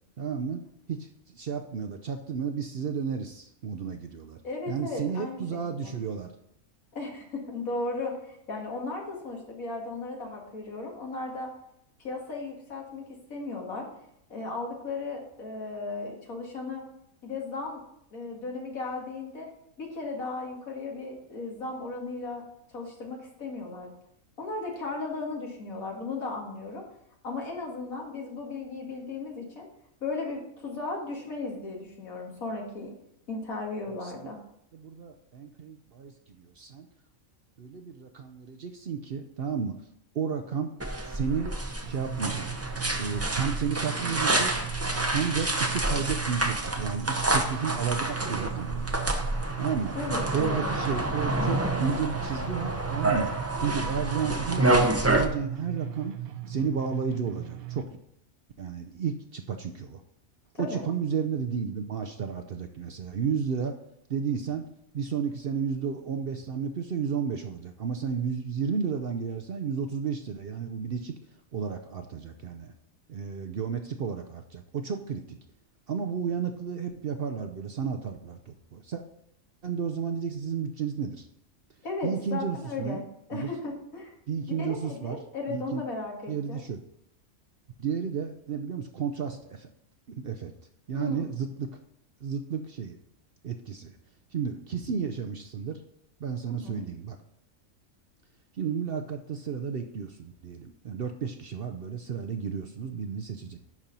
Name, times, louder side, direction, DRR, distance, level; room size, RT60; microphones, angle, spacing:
voice 1, 0.2-1.1 1.3-4.4 4.7-6.3 34.0-34.3 34.7-36.9 37.6-39.7 40.1-40.7 41.0-41.5 41.8-42.5 43.0-44.5 45.1-49.0 49.6-50.0 50.3-53.3 53.6-56.1 56.5-57.9 58.6-60.0 60.6-63.7 64.1-64.7 64.9-71.1 71.5-72.7 73.1-75.4 75.9-79.0 79.6-81.3 82.0-83.0 83.3-83.5 84.3-85.2 85.5-85.8 86.3-86.8 87.8-89.7 90.1-90.5 90.9-91.7 92.2-93.0 93.4-93.9 94.3-95.8 96.2-97.2 98.6-103.6, right 6 dB, 55° right, 6 dB, 0.7 m, -32 dB
voice 2, 4.4-5.4 5.7-6.0 6.9-11.5 12.0-13.0 13.3-13.9 14.3-16.8 17.2-17.8 18.1-19.5 19.8-22.4 22.7-23.9 24.4-26.8 27.2-29.7 30.0-32.9 33.3-34.4 49.9-50.8 60.6-60.8 81.8-83.0 83.3-84.1 84.6-86.6 90.9-91.2 96.6-96.9, left 3 dB, 80° left, 0 dB, 2.3 m, -36 dB
sound 1, 40.8-55.3, right 2 dB, 15° right, 0.5 m, -28 dB
sound 2, 41.8-57.8, right 13 dB, 85° right, 1.2 m, -38 dB
11.0 x 4.4 x 5.3 m, 0.76 s
omnidirectional pair, 1.4 m